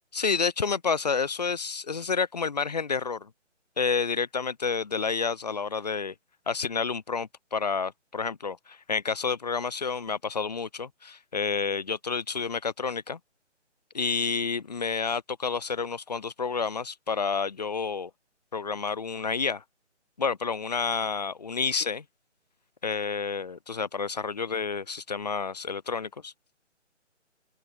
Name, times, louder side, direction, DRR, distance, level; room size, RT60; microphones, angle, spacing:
voice 1, 0.1-3.3 3.8-6.1 6.5-13.2 13.9-18.1 18.5-19.6 20.2-22.0 22.8-26.3, left 5 dB, 35° left, 1.5 m, -29 dB
open air
hypercardioid pair, 175°, 36 cm